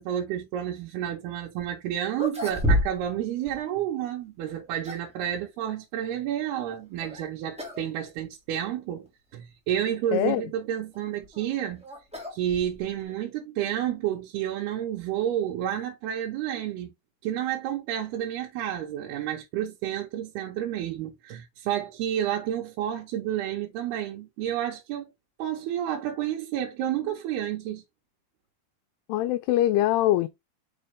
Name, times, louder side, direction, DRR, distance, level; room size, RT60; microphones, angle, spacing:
voice 1, 0.0-9.1 9.3-11.8 12.3-16.9 17.2-25.1 25.4-27.8, right 11 dB, 85° right, 3.0 m, -30 dB
sound 1, 1.6-1.7 2.1-3.2 3.5-3.6 4.4-5.2 7.0-7.2 7.6-7.9 8.2-8.3 9.0-9.1 10.9-13.0, equal, 5° right, 0.8 m, -30 dB
voice 2, 10.1-10.4 29.1-30.3, left 14 dB, 85° left, 2.7 m, -23 dB
6.3 x 5.3 x 3.5 m
omnidirectional pair, 4.6 m